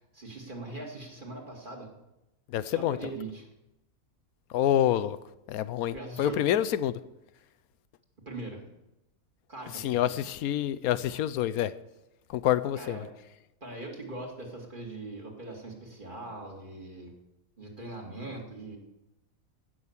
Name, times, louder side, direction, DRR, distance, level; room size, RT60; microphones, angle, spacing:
voice 1, 0.0-1.9 2.7-3.5 5.9-6.4 8.3-8.6 9.5-10.2 12.8-13.1 13.6-17.1 17.6-18.8, right 2 dB, 35° right, 2.4 m, -41 dB
voice 2, 2.5-3.0 4.5-5.2 5.5-7.0 9.7-11.7 12.3-13.0, left 11 dB, 90° left, 1.1 m, -27 dB
17.0 x 6.3 x 7.1 m
omnidirectional pair, 1.5 m